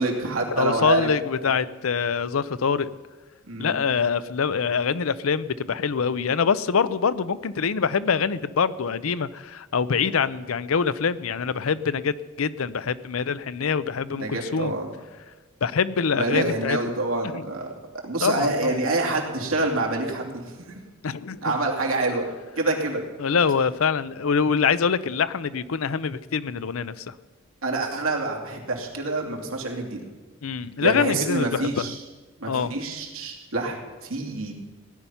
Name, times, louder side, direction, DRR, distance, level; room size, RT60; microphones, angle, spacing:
voice 1, 0.0-1.1 1.5-1.6 3.5-3.8 14.1-14.9 16.2-17.7 18.0-20.8 21.4-22.3 22.6-23.0 27.6-30.0 30.8-32.0 32.4-34.5, right 2 dB, 85° right, 0 dB, 2.7 m, -26 dB
voice 2, 0.6-2.9 3.6-14.7 15.6-16.8 17.2-17.4 18.2-18.8 21.0-21.6 23.2-27.1 30.4-31.9 32.5-32.7, left 6 dB, 80° left, 15 dB, 0.6 m, -25 dB
16.5 x 10.5 x 5.7 m, 1.3 s
head